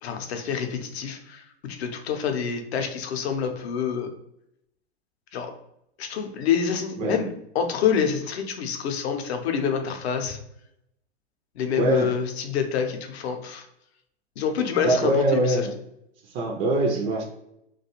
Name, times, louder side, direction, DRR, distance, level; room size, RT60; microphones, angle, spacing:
voice 1, 0.0-4.1 5.3-5.5 6.0-7.3 7.5-10.4 11.6-13.7 14.4-15.7, left 7 dB, 70° left, 5 dB, 0.6 m, -27 dB
voice 2, 11.8-12.1 14.8-15.7 16.2-17.3, right 2 dB, 25° right, 1 dB, 0.3 m, -23 dB
2.4 x 2.3 x 2.8 m, 0.80 s
hypercardioid pair, 110°, 33 cm